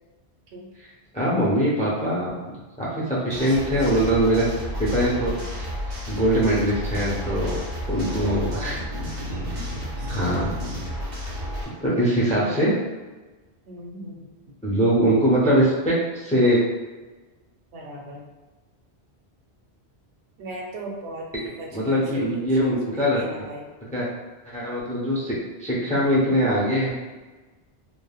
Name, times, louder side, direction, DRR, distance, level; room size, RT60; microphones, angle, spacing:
voice 1, 1.1-2.4 2.8-4.5 4.8-5.6 6.1-8.8 10.1-10.5 11.8-12.7 14.6-16.6 21.3-21.4 21.7-23.2 23.9-24.1 24.4-26.9, equal, 10° left, -7 dB, 0.3 m, -22 dB
sound 1, 3.3-11.6, left 1 dB, 60° right, 1.4 m, -31 dB
voice 2, 3.5-4.2 5.3-5.6 8.2-8.7 10.0-10.5 12.1-12.6 13.7-14.3 17.7-18.2 20.4-21.3 21.6-23.6, right 1 dB, 85° right, -1 dB, 0.9 m, -39 dB
3.2 x 2.1 x 2.3 m, 1.2 s
omnidirectional pair, 1.1 m